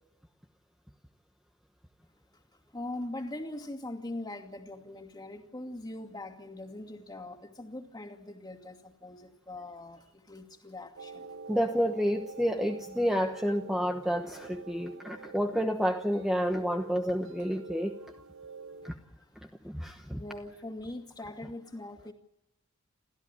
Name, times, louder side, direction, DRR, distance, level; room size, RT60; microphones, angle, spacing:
voice 1, 2.7-11.4 13.5-13.6 20.1-22.1, left 1 dB, 20° left, 4 dB, 2.5 m, -41 dB
sound 1, 11.0-18.9, right 4 dB, 65° right, 1.0 m, -46 dB
voice 2, 11.5-17.9 18.8-18.9 19.6-20.2, equal, ahead, 3 dB, 1.1 m, -29 dB
29.5 x 14.0 x 9.8 m, 0.87 s
head